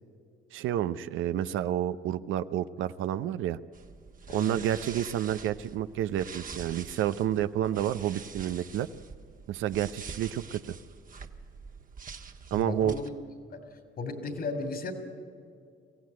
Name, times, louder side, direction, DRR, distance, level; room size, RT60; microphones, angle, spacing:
voice 1, 0.5-3.6 4.3-8.9 9.5-10.8 12.5-13.0, right 11 dB, 85° right, 13 dB, 0.6 m, -29 dB
sound 1, 3.7-13.1, right 5 dB, 45° right, 1.4 m, -45 dB
voice 2, 4.3-4.6 12.5-13.1 13.5-13.6 14.0-14.9, left 3 dB, 55° left, 6 dB, 2.8 m, -35 dB
24.0 x 16.0 x 9.5 m, 2.2 s
cardioid pair, 90°, 20 cm